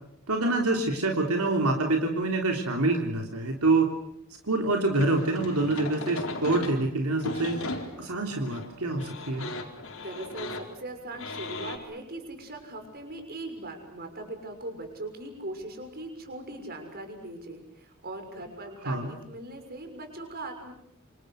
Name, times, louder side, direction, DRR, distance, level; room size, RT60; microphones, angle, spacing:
voice 1, 0.3-3.9 4.4-7.6 8.0-9.5 18.9-19.1, right 2 dB, 80° right, 2 dB, 3.5 m, -26 dB
sound 1, 4.9-11.8, left 2 dB, 65° left, 4.5 m, -37 dB
voice 2, 10.0-20.7, right 2 dB, 45° right, 5 dB, 6.3 m, -40 dB
28.0 x 27.0 x 6.6 m, 0.72 s
head